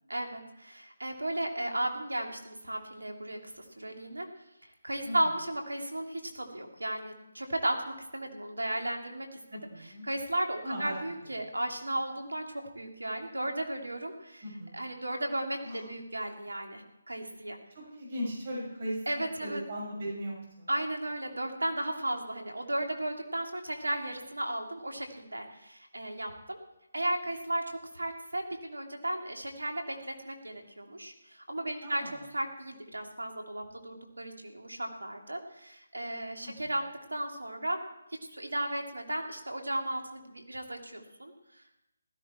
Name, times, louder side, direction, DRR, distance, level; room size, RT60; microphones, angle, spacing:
voice 1, 0.1-4.3 4.6-14.4 14.7-17.6 19.1-19.6 20.7-26.6 26.9-32.0 32.3-36.8 37.1-37.8 38.3-41.7, right 1 dB, 90° right, 3 dB, 2.7 m, -35 dB
voice 2, 9.5-10.0 10.6-10.9 14.4-14.8 15.6-15.8 17.7-19.0 19.4-20.7 31.8-32.1 36.4-36.5, equal, 45° right, -2 dB, 6.5 m, -37 dB
16.0 x 13.5 x 4.4 m, 0.87 s
figure-of-eight pair, 155°, 0 cm